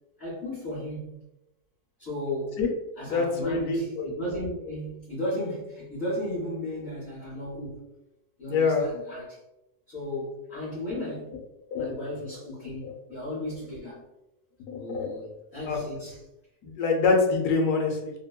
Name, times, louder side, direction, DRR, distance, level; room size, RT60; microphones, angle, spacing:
voice 1, 0.2-1.2 2.0-2.6 3.0-7.8 8.4-9.4 9.9-11.4 11.7-14.0 14.8-16.2, left 1 dB, 50° left, -9 dB, 1.0 m, -35 dB
voice 2, 3.1-4.1 8.5-8.8 11.7-11.9 12.8-12.9 14.7-15.1 15.7-15.8 16.6-18.1, left 4 dB, 75° left, 0 dB, 1.1 m, -25 dB
2.9 x 2.1 x 2.2 m, 0.94 s
omnidirectional pair, 1.6 m